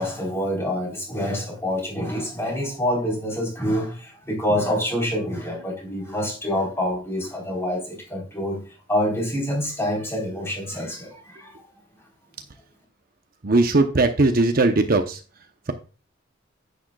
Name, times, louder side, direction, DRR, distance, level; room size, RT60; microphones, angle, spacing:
voice 1, 0.0-8.6 8.9-11.6, left 1 dB, 15° left, 4.2 m, -26 dB
voice 2, 13.4-15.2, right 2 dB, 50° right, 0.8 m, -19 dB
10.0 x 9.2 x 2.4 m
head